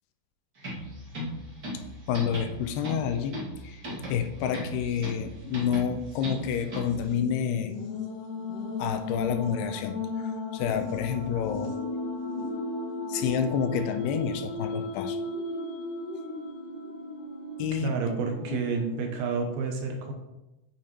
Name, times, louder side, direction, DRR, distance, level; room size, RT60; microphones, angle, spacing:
Percussion Loop, 0.6-7.1, equal, 30° right, 2.3 m, -38 dB
voice 1, 1.7-3.8 4.1-7.7 8.8-10.0 10.5-11.7 13.1-15.2 17.6-18.0 18.5-18.6, left 8 dB, 85° left, 8 dB, 2.8 m, -29 dB
sound 1, 4.8-5.4 5.7-5.8 6.8-19.3, left 2 dB, 60° left, 2.7 m, -35 dB
voice 2, 17.7-20.1, right 4 dB, 70° right, 3 dB, 2.8 m, -30 dB
8.6 x 6.9 x 4.4 m, 0.96 s
omnidirectional pair, 4.7 m